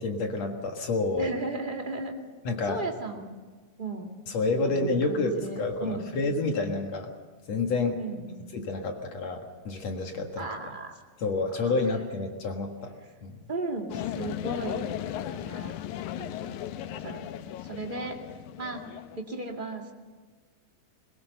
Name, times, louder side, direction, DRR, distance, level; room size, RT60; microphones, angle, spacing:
voice 1, 0.0-1.3 2.4-2.8 4.3-5.3 5.6-7.1 7.5-8.0 8.5-10.5 11.2-12.9 13.2-13.4, left 3 dB, 65° left, 3 dB, 2.7 m, -29 dB
voice 2, 1.2-2.2 2.7-3.2 3.8-4.1 4.6-6.1 8.0-8.5 10.4-11.0 11.6-11.7 13.5-14.9 15.1-15.8 16.2-17.2 17.6-18.2 18.6-18.8 19.2-19.9, right 2 dB, 20° right, 1 dB, 2.0 m, -36 dB
sound 1, 13.9-19.2, left 11 dB, 85° left, 2.2 m, -36 dB
22.0 x 21.0 x 6.9 m, 1.4 s
omnidirectional pair, 3.4 m